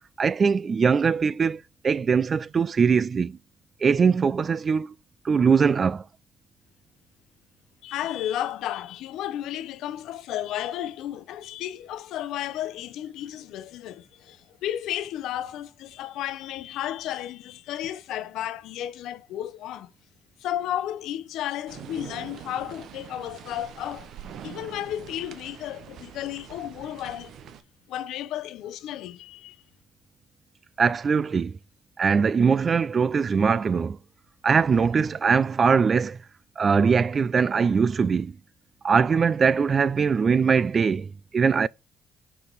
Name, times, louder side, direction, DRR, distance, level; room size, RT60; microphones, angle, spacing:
voice 1, 0.2-3.4 3.8-4.9 5.2-6.0 30.8-31.6 32.0-34.0 34.4-36.2 36.6-38.4 38.8-41.7, right 5 dB, 40° right, 0.3 m, -21 dB
voice 2, 7.8-19.9 20.4-24.1 24.4-27.3 27.9-29.6, left 12 dB, 80° left, 0.7 m, -33 dB
sound 1, 21.7-27.6, right 9 dB, 65° right, 0.8 m, -44 dB
5.4 x 4.7 x 3.9 m
cardioid pair, 90°, 0 cm